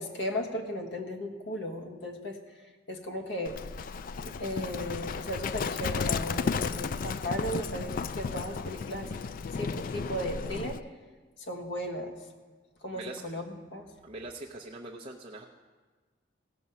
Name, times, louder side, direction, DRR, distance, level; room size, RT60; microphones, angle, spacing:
voice 1, 0.0-3.6 4.2-10.8 11.4-12.2 12.8-13.9, equal, 70° left, 4 dB, 1.3 m, -36 dB
Livestock farm animals working animals, 3.4-10.8, left 5 dB, 45° left, 0.3 m, -34 dB
voice 2, 14.0-15.4, right 2 dB, 30° right, -5 dB, 0.7 m, -42 dB
17.0 x 6.2 x 5.5 m, 1.4 s
head